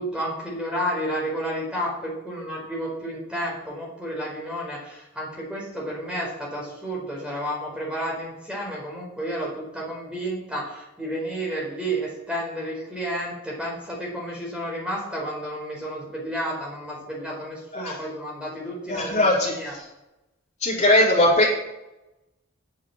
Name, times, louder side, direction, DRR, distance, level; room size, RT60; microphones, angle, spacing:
voice 1, 0.0-19.8, equal, 5° right, -3 dB, 4.6 m, -31 dB
voice 2, 18.9-19.8 20.6-21.7, left 1 dB, 35° left, -5 dB, 4.5 m, -20 dB
9.4 x 8.5 x 7.7 m, 0.94 s
head